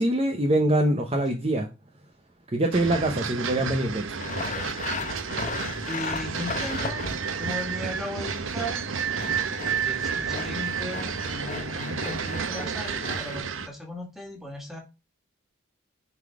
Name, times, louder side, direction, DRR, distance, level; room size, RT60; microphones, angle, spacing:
voice 1, 0.0-1.7 2.5-4.1, right 1 dB, 30° right, 3 dB, 0.8 m, -24 dB
sound 1, 2.7-13.7, right 6 dB, 75° right, 0.8 m, -31 dB
Sawing, 4.2-7.4 8.8-13.4, left 4 dB, 35° left, 0.9 m, -36 dB
voice 2, 5.8-8.9 9.8-14.8, equal, ahead, 1 dB, 2.1 m, -37 dB
9.7 x 3.9 x 4.8 m, 0.29 s
head